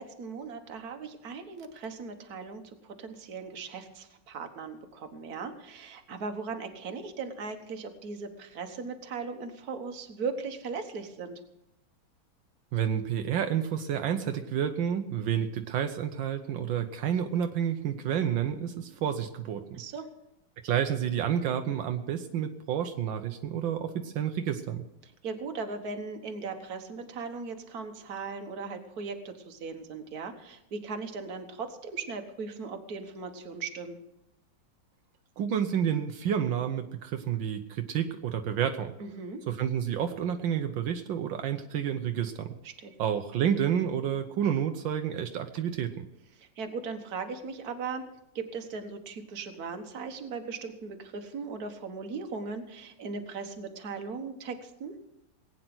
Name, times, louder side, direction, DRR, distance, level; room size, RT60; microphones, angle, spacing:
voice 1, 0.0-11.4 19.7-20.1 25.0-34.0 39.0-39.4 42.6-42.9 46.4-48.0 48.3-54.9, right 4 dB, 55° right, 6 dB, 1.7 m, -38 dB
voice 2, 12.7-19.8 20.6-24.8 35.4-38.9 39.5-42.5 43.0-46.1, right 9 dB, 80° right, 6 dB, 1.6 m, -30 dB
19.0 x 9.2 x 6.1 m, 0.86 s
omnidirectional pair, 2.1 m